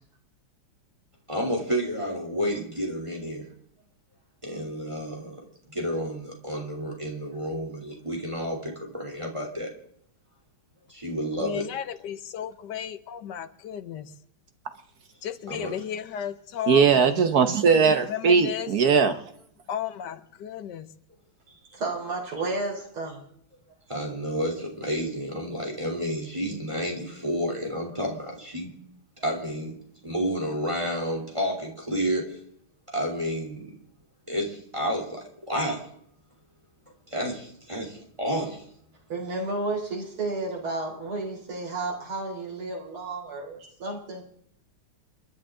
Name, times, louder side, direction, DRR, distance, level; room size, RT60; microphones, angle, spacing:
voice 1, 1.3-3.5 4.4-5.4 5.7-9.7 10.9-11.6 15.5-15.7 23.9-28.7 29.2-29.7 30.0-32.4 32.9-33.7 34.3-35.9 37.1-38.6, equal, 15° right, 3.1 m, -30 dB
voice 2, 11.4-14.1 15.2-17.2 18.1-18.7 19.7-20.9, left 9 dB, 65° left, 1.3 m, -34 dB
voice 3, 16.7-19.2, right 6 dB, 60° right, 1.1 m, -20 dB
voice 4, 21.7-23.2 39.1-44.2, right 2 dB, 85° right, 4.5 m, -32 dB
29.5 x 10.5 x 3.7 m
omnidirectional pair, 2.3 m